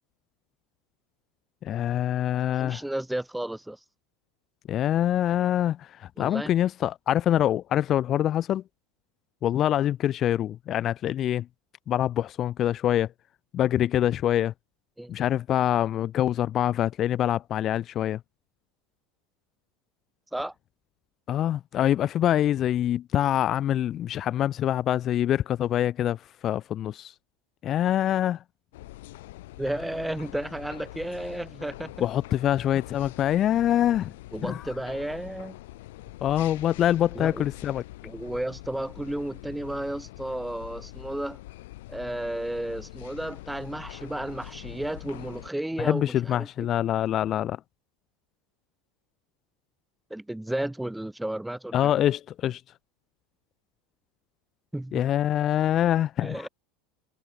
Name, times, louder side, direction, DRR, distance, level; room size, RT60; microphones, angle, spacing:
voice 1, 1.6-2.8 4.7-8.6 9.4-11.5 11.9-13.1 13.5-14.5 15.1-18.2 21.3-27.1 27.6-28.4 32.0-34.1 34.4-34.6 36.2-37.8 45.8-47.6 51.7-52.6 54.9-56.5, left 11 dB, 35° left, 0.6 m, -25 dB
voice 2, 2.6-3.8 6.2-6.5 15.0-15.1 20.3-20.5 29.6-32.0 34.3-35.5 37.1-37.4 38.0-41.4 41.9-46.7 50.1-51.9 54.7-55.1 56.2-56.5, right 1 dB, 5° right, 1.4 m, -33 dB
sound 1, 28.7-45.5, left 18 dB, 60° left, 1.9 m, -44 dB
figure-of-eight pair, 75°, 0 cm